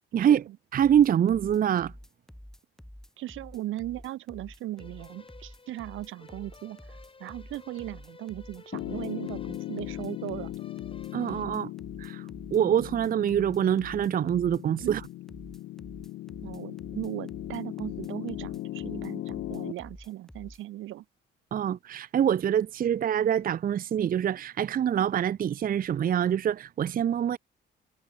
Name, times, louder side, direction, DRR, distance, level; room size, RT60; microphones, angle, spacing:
voice 1, 0.2-0.6 3.2-6.8 7.2-10.5 14.8-15.0 16.4-21.0, right 15 dB, 85° right, 2.3 m, -38 dB
voice 2, 0.7-1.9 11.1-11.7 12.0-12.2 12.5-15.0 21.5-27.4, right 9 dB, 45° right, 0.6 m, -25 dB
sound 1, 0.8-20.6, equal, ahead, 3.0 m, -48 dB
sound 2, 4.8-11.5, left 4 dB, 25° left, 3.6 m, -53 dB
Piano, 8.7-19.7, left 16 dB, 80° left, 0.7 m, -38 dB
cardioid pair, 90°, 20 cm